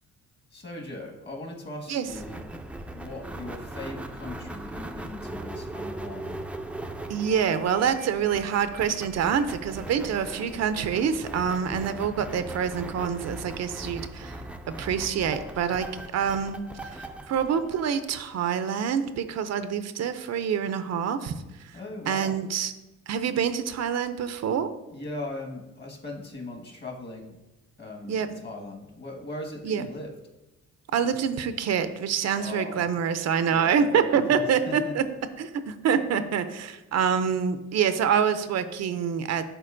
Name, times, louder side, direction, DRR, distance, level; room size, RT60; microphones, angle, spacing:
voice 1, 0.5-2.4 2.9-6.4 21.7-22.4 24.9-27.4 27.8-30.1 32.3-32.9 33.4-34.9, left 2 dB, 35° left, 1 dB, 1.6 m, -39 dB
sound 1, 2.1-18.6, right 1 dB, 5° right, 0.4 m, -39 dB
voice 2, 7.1-14.4 14.8-21.8 22.1-22.7 23.1-24.7 28.1-28.3 29.6-29.8 30.9-35.0 35.4-39.6, right 7 dB, 60° right, 10 dB, 0.5 m, -26 dB
11.0 x 4.0 x 2.6 m, 1.0 s
cardioid pair, 90°, 30 cm